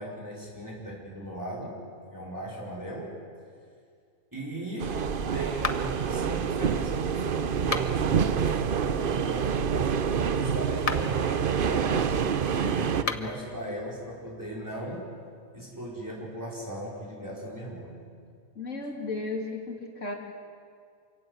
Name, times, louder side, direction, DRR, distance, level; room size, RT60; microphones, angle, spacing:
voice 1, 0.0-1.8 2.0-3.2 4.3-9.7 10.3-12.2 12.5-15.1 15.5-17.9, right 1 dB, 10° right, -4 dB, 5.0 m, -38 dB
sound 1, 4.8-13.0, right 7 dB, 45° right, 0.8 m, -27 dB
sound 2, 5.6-6.1 7.6-8.2 10.7-11.2 12.9-13.4, left 4 dB, 30° left, 0.8 m, -33 dB
voice 2, 18.5-20.1, left 3 dB, 55° left, 1 dB, 3.4 m, -34 dB
28.0 x 17.0 x 8.1 m, 2.2 s
omnidirectional pair, 1.5 m